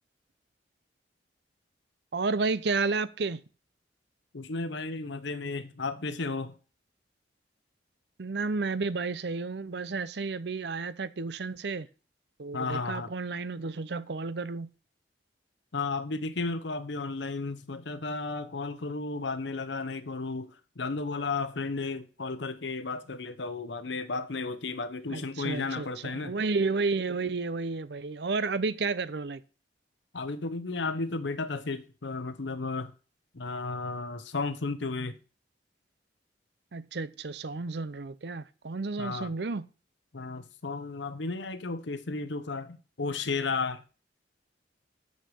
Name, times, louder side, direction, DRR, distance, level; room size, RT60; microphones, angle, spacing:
voice 1, 2.1-3.4 8.2-11.9 12.4-14.7 25.1-29.4 36.7-39.7, right 4 dB, 65° right, 0.6 m, -31 dB
voice 2, 4.3-6.5 12.5-13.1 15.7-26.3 30.1-32.9 33.3-35.2 39.0-39.3 40.1-43.8, left 3 dB, 75° left, 0.9 m, -33 dB
6.5 x 6.4 x 6.9 m
head